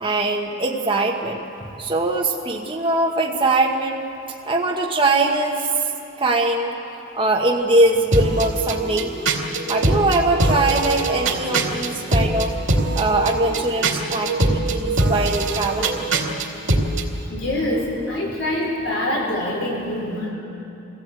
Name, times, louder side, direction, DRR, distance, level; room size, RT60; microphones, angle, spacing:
voice 1, 0.0-1.4 1.8-4.1 4.4-5.7 6.2-6.7 7.2-9.1 9.7-12.5 12.9-16.0, right 2 dB, 25° right, -2 dB, 1.3 m, -21 dB
sound 1, 8.1-17.1, right 2 dB, 75° right, 2.5 m, -22 dB
voice 2, 17.3-20.3, left 1 dB, 70° left, -2 dB, 5.1 m, -25 dB
24.5 x 16.0 x 8.3 m, 2.8 s
head